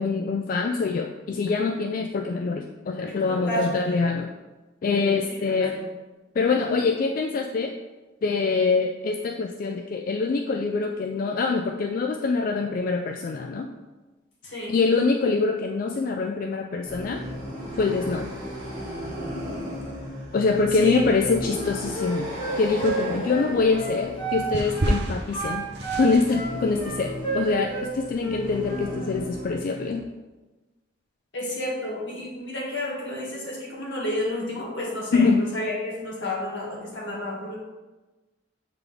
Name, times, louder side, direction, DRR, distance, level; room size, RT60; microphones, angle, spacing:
voice 1, 0.0-4.3 4.8-5.8 6.4-7.8 8.2-13.7 14.7-17.2 17.8-18.3 20.3-22.3 22.6-25.7 26.0-30.0 35.1-35.5, left 4 dB, 50° left, 3 dB, 0.3 m, -24 dB
voice 2, 3.1-3.7 5.3-5.8 14.4-14.7 20.8-21.0 31.3-37.6, left 1 dB, 80° left, -4 dB, 2.0 m, -31 dB
sound 1, 16.8-30.0, equal, 20° right, 1.9 m, -36 dB
sound 2, 21.4-22.2 22.8-28.1, right 1 dB, 65° right, 0.8 m, -32 dB
Wind instrument woodwind instrument, 21.5-24.5 24.7-25.0 25.3-27.9 28.2-28.9, right 3 dB, 25° left, 1.2 m, -31 dB
7.4 x 3.9 x 3.4 m, 1.2 s
head